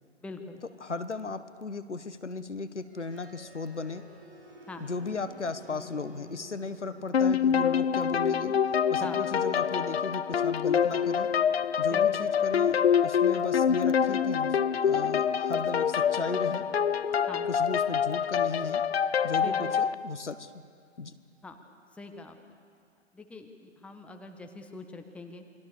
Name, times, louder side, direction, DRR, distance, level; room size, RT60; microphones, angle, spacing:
voice 1, 0.2-0.6 4.7-4.9 9.0-9.3 11.9-12.3 17.3-17.5 19.4-19.8 21.4-21.6 21.9-22.6 23.1-25.4, left 3 dB, 5° left, 4 dB, 1.4 m, -43 dB
voice 2, 0.8-4.0 4.8-8.5 8.9-11.3 11.8-16.6 17.4-18.8 19.2-20.6 21.0-21.1, left 4 dB, 75° left, 12 dB, 1.4 m, -36 dB
sound 1, 2.7-14.6, right 1 dB, 50° right, 6.5 m, -53 dB
sound 2, 7.1-19.9, left 7 dB, 60° left, 0.9 m, -26 dB
28.0 x 22.5 x 6.9 m, 2.2 s
figure-of-eight pair, 120°, 36 cm